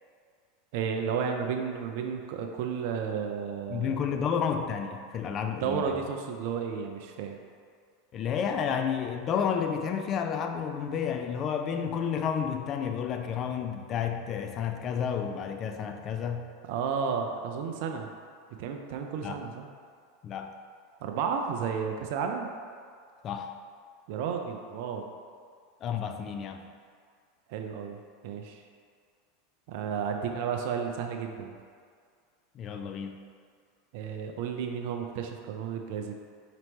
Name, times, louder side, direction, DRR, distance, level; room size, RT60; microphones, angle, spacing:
voice 1, 0.7-4.0 5.6-7.4 16.6-18.1 18.6-19.7 21.0-22.5 24.1-25.1 27.5-28.0 28.2-28.6 29.7-31.5 33.9-36.1, right 6 dB, 60° right, 3 dB, 0.3 m, -32 dB
voice 2, 3.7-6.0 8.1-16.5 19.2-19.4 20.2-20.5 23.2-23.6 25.8-26.6 32.5-33.2, left 7 dB, 40° left, 6 dB, 0.3 m, -31 dB
4.3 x 2.9 x 3.2 m, 2.1 s
hypercardioid pair, 90°, 0 cm